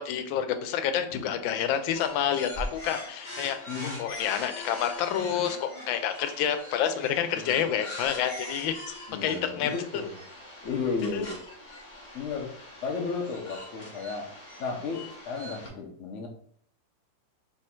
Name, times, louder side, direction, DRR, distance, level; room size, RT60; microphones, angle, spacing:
voice 1, 0.0-3.6 4.0-8.7 9.2-9.7 11.1-11.3, left 9 dB, 90° left, 8 dB, 1.3 m, -28 dB
sound 1, 1.9-15.7, left 1 dB, 30° left, 1.0 m, -42 dB
voice 2, 3.7-4.0 7.3-7.6 9.1-10.2 10.6-11.4 12.1-12.5 12.8-14.3 14.6-16.3, left 5 dB, 55° left, 1 dB, 0.9 m, -33 dB
3.5 x 3.0 x 4.3 m, 0.62 s
omnidirectional pair, 2.1 m